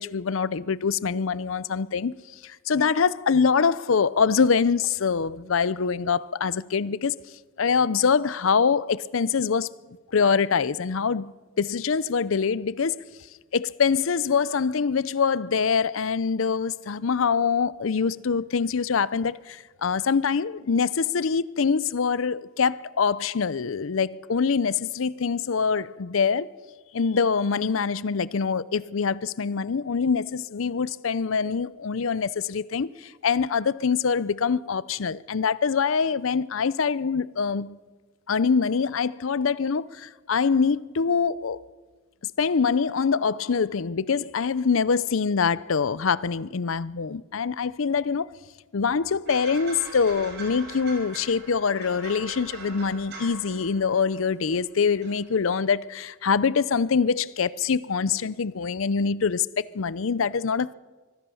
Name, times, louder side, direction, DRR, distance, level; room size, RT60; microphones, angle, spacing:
voice 1, 0.0-2.1 2.4-7.1 7.6-9.7 10.1-12.9 13.5-26.5 26.9-37.8 38.3-41.6 42.4-48.3 48.7-59.5 59.7-60.7, left 5 dB, 70° left, 0.6 m, -24 dB
sound 1, 49.3-54.6 54.9-55.2, right 3 dB, 55° right, 5.6 m, -42 dB
24.5 x 16.0 x 7.0 m
head